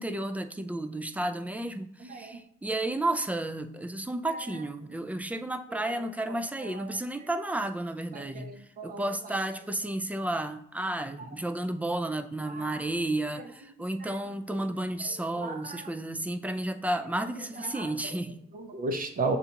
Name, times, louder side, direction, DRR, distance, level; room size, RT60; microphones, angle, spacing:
voice 1, 0.0-8.5 8.8-18.4, right 1 dB, 5° right, 8 dB, 0.3 m, -32 dB
voice 2, 2.0-2.4 5.7-6.4 6.6-6.9 8.1-9.0 12.5-12.8 14.0-14.1 14.5-14.6 15.0-15.9 17.6-17.9 18.5-19.4, right 3 dB, 45° right, 6 dB, 0.6 m, -36 dB
6.7 x 2.4 x 2.8 m, 0.73 s
cardioid pair, 90°, 20 cm